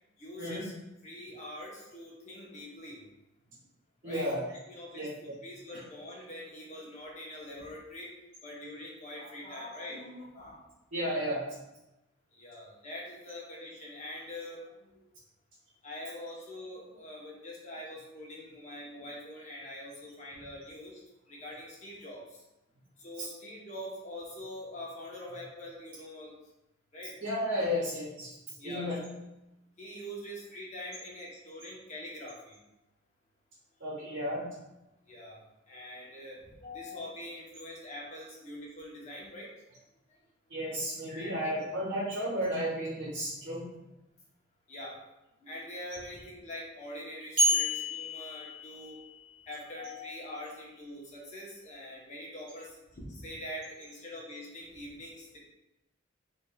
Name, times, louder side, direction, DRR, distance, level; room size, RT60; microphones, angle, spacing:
voice 1, 0.2-0.7 1.0-3.0 4.0-8.1 8.4-10.7 12.3-15.0 15.8-21.0 21.3-22.4 23.0-26.4 26.9-27.1 27.7-27.8 28.6-29.1 29.8-32.6 35.1-35.4 35.7-39.8 41.1-41.7 44.7-45.0 45.4-49.0 49.5-55.4, left 1 dB, 35° left, -4 dB, 0.8 m, -44 dB
voice 2, 4.0-4.4 4.9-5.1 10.9-11.4 23.2-23.3 27.2-28.3 28.6-29.0 33.8-34.5 40.5-43.6, equal, 85° right, -7 dB, 1.0 m, -33 dB
sound 1, 47.4-49.4, equal, 25° right, 1.4 m, -30 dB
3.6 x 3.2 x 2.2 m, 0.93 s
head